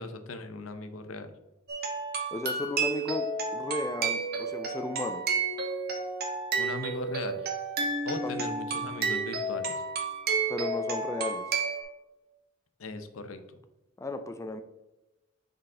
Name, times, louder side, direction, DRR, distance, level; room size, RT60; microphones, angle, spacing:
voice 1, 0.0-1.3 6.6-7.4 8.0-9.7 12.8-13.4, left 3 dB, 85° left, 8 dB, 0.7 m, -38 dB
sound 1, 1.7-11.8, right 4 dB, 50° right, 1.1 m, -31 dB
voice 2, 2.3-5.2 8.2-8.5 10.5-11.4 14.0-14.6, left 2 dB, 15° left, 7 dB, 0.3 m, -35 dB
6.4 x 4.0 x 3.7 m, 1.0 s
head